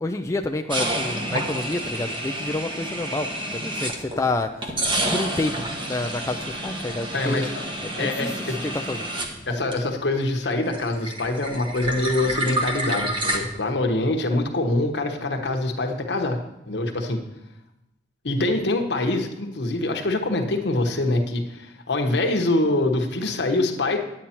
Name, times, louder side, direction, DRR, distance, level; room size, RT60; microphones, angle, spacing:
voice 1, 0.0-4.5 5.1-7.5 7.8-8.3 8.7-9.0, left 2 dB, 15° left, 4 dB, 0.4 m, -28 dB
sound 1, 0.7-4.2 4.6-10.2 10.4-13.4, right 1 dB, 30° right, 1.1 m, -29 dB
voice 2, 7.1-7.6 7.9-8.7 9.5-16.4 16.7-17.2 18.2-24.0, left 2 dB, 70° left, 4 dB, 1.1 m, -24 dB
9.7 x 8.5 x 4.4 m, 0.88 s
head